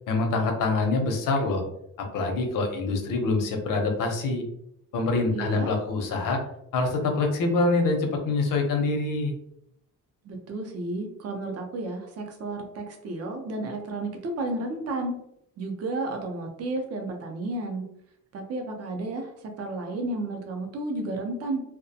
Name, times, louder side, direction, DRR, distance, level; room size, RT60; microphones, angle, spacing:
voice 1, 0.1-1.6 2.0-4.4 4.9-6.4 6.7-9.4, left 3 dB, 75° left, 3 dB, 0.7 m, -25 dB
voice 2, 5.3-5.7 10.2-15.2 15.6-17.8 18.3-19.3 19.6-21.6, right 2 dB, 50° right, 3 dB, 0.5 m, -32 dB
2.3 x 2.1 x 2.6 m, 0.76 s
cardioid pair, 170°, 33 cm